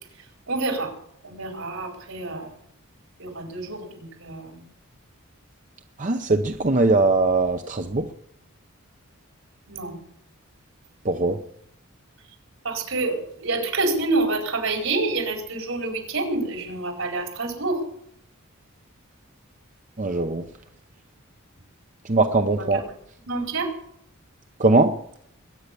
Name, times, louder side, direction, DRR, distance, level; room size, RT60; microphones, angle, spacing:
voice 1, 0.2-0.9 1.2-2.5 3.2-4.6 9.7-10.0 12.6-17.8 22.6-22.8 23.3-23.7, right 3 dB, 75° right, 2 dB, 4.6 m, -28 dB
voice 2, 6.0-8.1 11.0-11.4 20.0-20.4 22.0-22.8 24.6-24.9, right 2 dB, 35° right, 6 dB, 0.8 m, -20 dB
21.5 x 9.6 x 6.8 m, 0.71 s
head